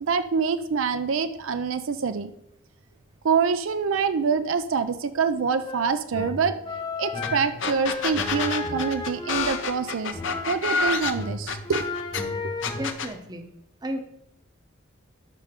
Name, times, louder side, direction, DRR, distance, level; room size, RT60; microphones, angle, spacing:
voice 1, 0.0-2.3 3.2-6.5 7.0-10.2 10.5-11.9 12.2-12.5, right 5 dB, 70° right, 10 dB, 0.5 m, -26 dB
sound 1, 5.6-10.8 11.1-12.9, left 3 dB, 20° left, 0.8 m, -33 dB
sound 2, 7.2-7.3 7.6-12.2 12.6-13.1, left 4 dB, 60° left, 0.8 m, -28 dB
voice 2, 12.8-13.5 13.8-14.0, equal, 20° right, 6 dB, 0.8 m, -32 dB
12.5 x 5.4 x 3.6 m, 0.79 s
head